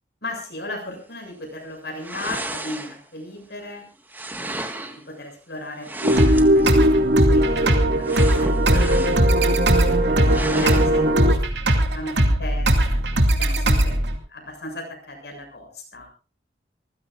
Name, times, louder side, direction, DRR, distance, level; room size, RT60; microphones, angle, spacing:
voice 1, 0.2-3.8 4.4-11.0 11.9-14.0 14.3-16.1, left 1 dB, 65° left, 4 dB, 7.2 m, -36 dB
sound 1, 2.0-3.2 4.1-5.0 5.8-6.7 8.0-9.3 9.7-9.8 10.3-10.9, right 1 dB, 10° right, 1.6 m, -33 dB
sound 2, 6.0-11.3, right 1 dB, 60° right, 2.0 m, -20 dB
sound 3, 6.2-14.2, right 1 dB, 75° right, 2.5 m, -20 dB
26.5 x 15.5 x 2.5 m, 0.33 s
head